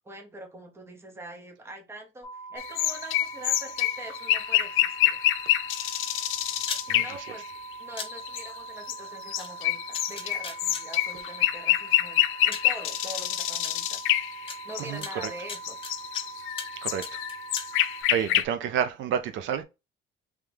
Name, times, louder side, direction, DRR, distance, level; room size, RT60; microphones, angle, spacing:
voice 1, 0.0-5.2 6.8-7.5 7.8-14.0 14.6-15.8 18.3-18.5, right 1 dB, 10° right, 0.7 m, -43 dB
sound 1, 2.2-18.0, right 4 dB, 45° right, 1.8 m, -42 dB
sound 2, 2.6-7.7 8.1-15.3 15.6-18.4, left 14 dB, 85° left, 0.5 m, -27 dB
sound 3, 6.6-6.8 8.0-8.1 9.4-9.5 9.9-10.8 11.9-12.0 12.5-12.7 13.6-13.7 14.5-14.6 15.0-16.2 16.6-16.8 17.0-17.7, left 5 dB, 25° left, 0.7 m, -36 dB
voice 2, 14.8-15.3 16.8-17.2 18.1-19.6, right 8 dB, 70° right, 0.5 m, -29 dB
3.5 x 3.1 x 3.3 m
cardioid pair, 180°, 20 cm